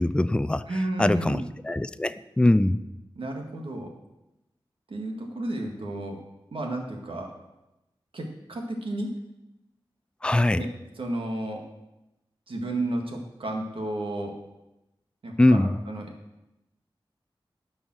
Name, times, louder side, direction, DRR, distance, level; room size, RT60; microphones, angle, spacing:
voice 1, 0.0-0.6 1.0-2.8 10.2-10.6 15.4-15.8, left 1 dB, 10° left, 14 dB, 0.4 m, -22 dB
voice 2, 0.7-1.4 3.2-3.9 4.9-6.2 6.5-7.3 8.1-9.1 10.6-10.7 11.0-11.6 12.5-14.3 15.2-16.1, right 1 dB, 80° right, 1 dB, 1.9 m, -32 dB
12.5 x 5.5 x 6.3 m, 0.93 s
wide cardioid pair, 65°, 9 cm